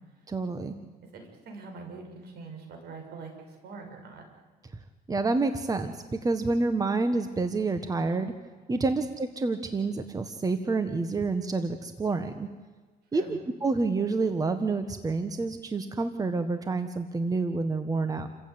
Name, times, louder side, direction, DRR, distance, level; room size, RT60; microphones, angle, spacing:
voice 1, 0.3-0.7 5.1-8.3 8.7-12.5 13.1-18.3, right 3 dB, 20° right, 9 dB, 1.5 m, -28 dB
voice 2, 0.8-4.2 8.8-8.9 13.1-13.4, right 4 dB, 70° right, 4 dB, 6.7 m, -44 dB
28.5 x 15.0 x 9.6 m, 1.4 s
cardioid pair, 110°, 17 cm